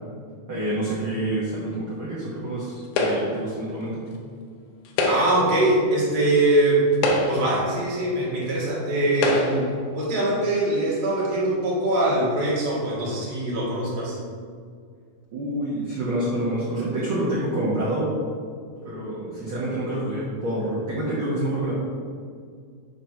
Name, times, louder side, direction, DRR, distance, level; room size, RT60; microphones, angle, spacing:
voice 1, 0.5-4.1 15.3-18.1 18.7-21.7, right 1 dB, 75° right, -7 dB, 1.2 m, -27 dB
sound 1, 3.0-3.5 4.8-5.5 6.4-6.5 6.9-7.6 8.5-8.6 9.2-9.7, left 2 dB, 70° left, 1.9 m, -24 dB
voice 2, 5.0-6.9 7.3-14.2, right 1 dB, 45° right, -7 dB, 0.6 m, -23 dB
6.0 x 4.0 x 5.7 m, 2.1 s
omnidirectional pair, 4.2 m